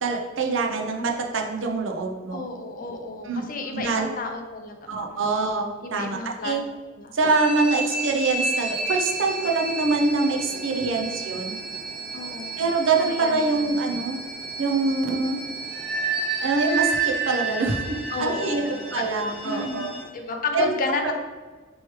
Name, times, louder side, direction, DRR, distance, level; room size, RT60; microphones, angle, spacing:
voice 1, 0.0-2.5 3.2-3.4 3.7-4.1 4.9-6.2 6.4-6.6 7.1-11.6 12.6-14.2 14.6-15.4 16.4-17.8 18.2-19.9 20.5-20.7, right 3 dB, 70° right, 2 dB, 0.5 m, -24 dB
voice 2, 2.3-5.2 5.8-6.6 7.0-7.1 10.5-11.0 12.1-12.6 13.0-14.0 18.1-19.0 19.4-19.9 20.1-21.1, left 3 dB, 45° left, 4 dB, 0.5 m, -32 dB
sound 1, 7.2-20.1, right 3 dB, ahead, 0.9 m, -31 dB
3.1 x 3.1 x 4.6 m, 1.4 s
head